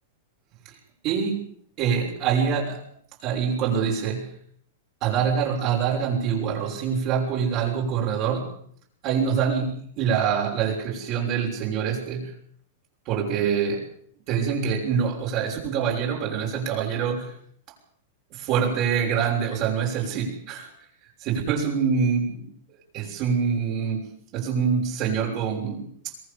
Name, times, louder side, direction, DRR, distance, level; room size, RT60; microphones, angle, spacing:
voice 1, 1.0-1.5 1.8-2.8 3.2-4.3 5.0-8.5 9.0-12.3 13.1-13.8 14.3-17.3 18.3-20.7 21.2-22.5 22.9-24.0 24.3-26.1, right 7 dB, 40° right, -1 dB, 6.2 m, -25 dB
23.0 x 19.0 x 7.1 m, 0.62 s
hypercardioid pair, 135°, 0 cm